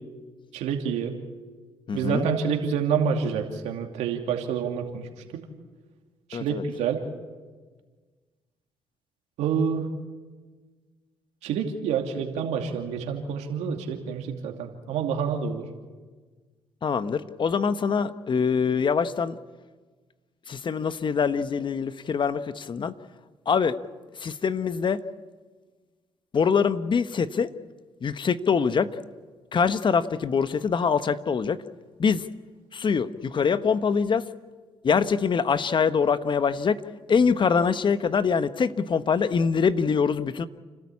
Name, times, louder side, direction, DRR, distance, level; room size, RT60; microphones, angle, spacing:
voice 1, 0.5-1.2 1.9-5.4 6.3-7.0 9.4-9.9 11.4-15.7, right 7 dB, 80° right, 3 dB, 2.7 m, -28 dB
voice 2, 1.9-2.3 6.3-6.6 16.8-19.4 20.5-22.9 23.5-23.8 24.2-25.0 26.3-27.5 28.0-28.9 29.5-31.6 32.0-32.2 32.7-34.2 34.8-36.8 37.1-40.5, left 6 dB, 45° left, 13 dB, 1.1 m, -24 dB
29.5 x 13.0 x 8.5 m, 1.4 s
supercardioid pair, 60°, 11 cm